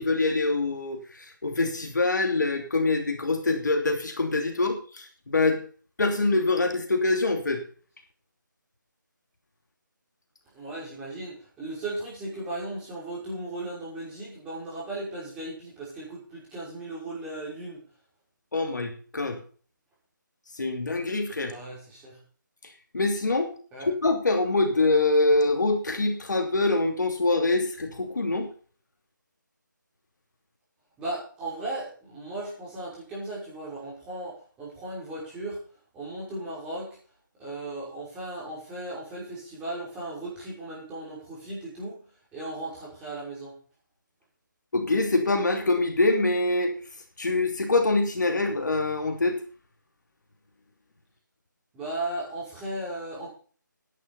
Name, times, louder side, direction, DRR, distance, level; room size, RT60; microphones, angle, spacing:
voice 1, 0.0-5.6 6.0-7.6 18.5-19.4 20.6-21.5 22.9-23.5 24.0-28.5 44.7-46.7 47.2-49.4, left 2 dB, 60° left, 4 dB, 2.9 m, -24 dB
voice 2, 10.5-17.8 21.4-22.2 23.7-23.9 31.0-35.6 35.9-37.0 37.4-42.0 42.3-43.6 51.7-53.3, right 2 dB, 10° right, -6 dB, 5.5 m, -36 dB
11.0 x 9.8 x 5.5 m, 0.41 s
figure-of-eight pair, 160°, 11 cm